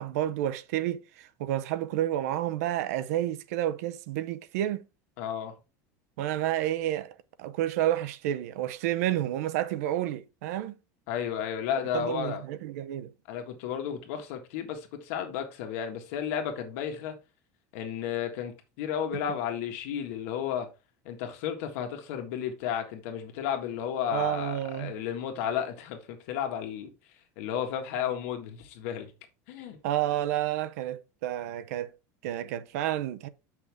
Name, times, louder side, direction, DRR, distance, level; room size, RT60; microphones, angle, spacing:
voice 1, 0.0-4.8 6.2-7.1 7.4-10.7 11.9-13.1 24.1-24.9 29.8-31.9 32.2-33.3, right 13 dB, 90° right, 0.7 m, -30 dB
voice 2, 5.2-5.5 11.1-12.4 13.3-17.2 17.7-20.7 21.0-26.9 27.4-29.1 29.5-29.8, left 9 dB, 65° left, 1.6 m, -33 dB
7.8 x 5.9 x 3.5 m
cardioid pair, 175°, 8 cm